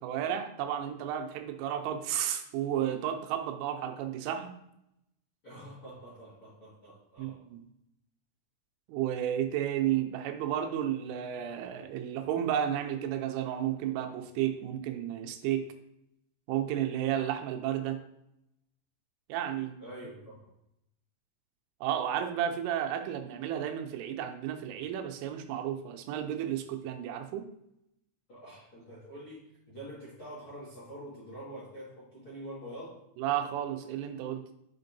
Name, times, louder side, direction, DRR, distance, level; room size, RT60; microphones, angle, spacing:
voice 1, 0.0-4.5 7.2-7.7 8.9-15.7 16.5-18.0 19.3-19.8 21.8-27.5 33.2-34.5, right 10 dB, 85° right, 7 dB, 3.2 m, -32 dB
voice 2, 5.4-7.4 19.8-20.5 28.3-33.0, right 1 dB, 90° left, -10 dB, 1.1 m, -46 dB
7.8 x 5.2 x 2.6 m, 0.79 s
omnidirectional pair, 5.6 m